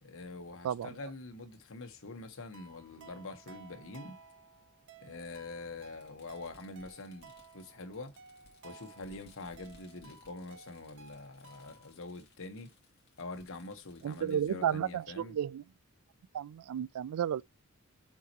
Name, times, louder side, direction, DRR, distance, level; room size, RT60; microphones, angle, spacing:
voice 1, 0.0-4.2 5.0-8.1 8.6-12.7 13.2-15.3, left 2 dB, 65° left, 1.2 m, -45 dB
Fireworks, 1.5-1.6 2.7-2.8 4.1-4.2 5.9-14.6, left 3 dB, 50° left, 2.4 m, -63 dB
sound 1, 2.5-11.9, right 4 dB, 55° right, 0.9 m, -56 dB
voice 2, 14.0-15.6 16.3-17.4, right 9 dB, 85° right, 0.3 m, -33 dB
7.3 x 5.4 x 3.0 m
head